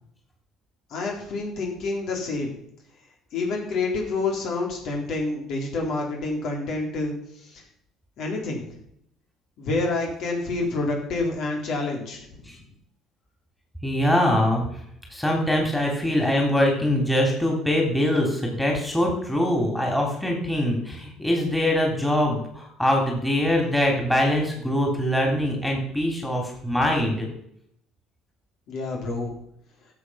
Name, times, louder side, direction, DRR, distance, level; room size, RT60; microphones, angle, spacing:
voice 1, 0.9-2.5 3.3-7.6 8.2-8.6 9.6-12.4 28.7-29.3, left 3 dB, 60° left, 0 dB, 3.8 m, -28 dB
voice 2, 13.8-14.8 15.1-27.3, left 1 dB, 5° left, 0 dB, 3.3 m, -23 dB
13.0 x 7.5 x 5.7 m, 0.72 s
cardioid pair, 115°, 0 cm